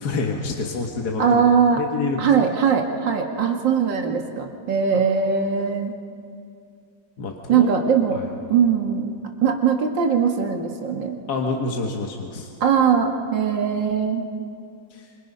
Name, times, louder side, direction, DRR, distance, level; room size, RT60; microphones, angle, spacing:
voice 1, 0.0-1.4 1.8-2.3 7.2-8.3 11.3-12.5 14.9-15.1, left 4 dB, 60° left, 1 dB, 2.0 m, -27 dB
voice 2, 1.2-1.8 2.2-5.9 7.5-8.2 8.5-9.1 9.4-11.2 12.6-14.2, right 7 dB, 75° right, 3 dB, 2.5 m, -20 dB
26.5 x 26.0 x 5.5 m, 2.4 s
omnidirectional pair, 2.0 m